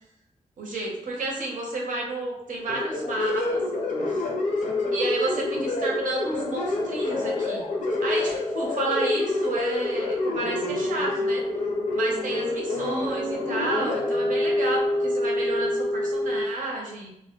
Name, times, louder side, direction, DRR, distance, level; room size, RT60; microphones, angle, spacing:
voice 1, 0.6-3.6 4.1-4.2 4.9-7.7 8.0-11.4 11.9-17.1, right 2 dB, 85° right, -1 dB, 0.6 m, -31 dB
sound 1, 2.7-16.4, left 2 dB, 75° left, 0.5 m, -27 dB
2.1 x 2.0 x 2.9 m, 0.82 s
wide cardioid pair, 100°, 13 cm